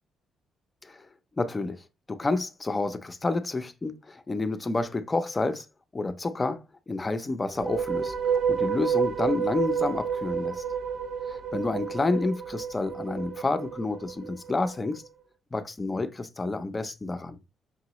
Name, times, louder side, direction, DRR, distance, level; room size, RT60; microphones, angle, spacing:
voice 1, 1.4-1.8 2.1-5.7 5.9-6.6 6.9-10.6 11.3-15.0 15.5-17.4, left 3 dB, 25° left, 0.6 m, -29 dB
sound 1, 7.5-14.8, right 7 dB, 55° right, 0.4 m, -30 dB
5.4 x 2.9 x 2.9 m
cardioid pair, 90°, 0 cm